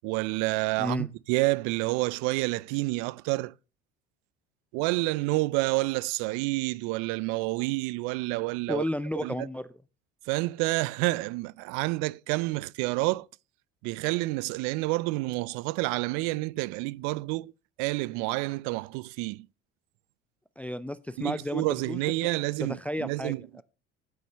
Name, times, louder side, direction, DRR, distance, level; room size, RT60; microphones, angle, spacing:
voice 1, 0.0-3.5 4.7-8.8 9.2-9.5 10.3-13.3 13.8-17.5 17.8-19.5 21.2-23.4, right 22 dB, 75° right, 0.5 m, -29 dB
voice 2, 0.8-1.1 8.7-9.7 20.6-22.0 22.6-23.6, left 1 dB, 5° left, 0.4 m, -32 dB
9.3 x 5.4 x 6.8 m
supercardioid pair, 85°, 30 cm